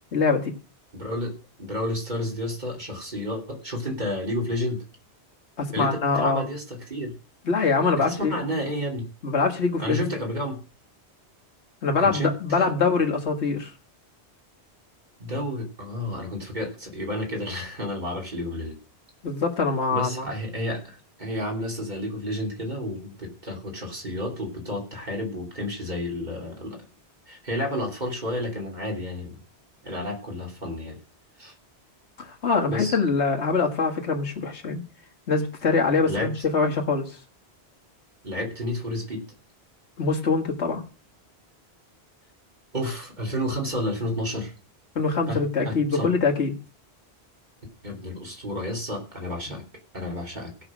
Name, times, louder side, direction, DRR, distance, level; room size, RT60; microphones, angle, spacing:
voice 1, 0.1-0.5 5.6-6.4 7.5-8.3 9.2-10.1 11.8-13.7 19.2-20.3 32.2-34.8 35.3-37.2 40.0-40.8 45.0-46.5, left 4 dB, 90° left, 2 dB, 2.0 m, -24 dB
voice 2, 0.9-4.8 5.7-7.2 8.0-9.1 9.8-10.6 12.0-12.7 15.2-18.8 19.9-26.9 27.3-29.4 29.8-31.0 31.4-31.5 32.7-33.0 36.1-36.3 38.2-39.3 42.7-44.5 45.3-46.1 47.8-49.6 49.9-50.5, left 1 dB, 45° right, 0 dB, 3.2 m, -31 dB
17.0 x 5.8 x 6.1 m, 0.36 s
omnidirectional pair, 1.1 m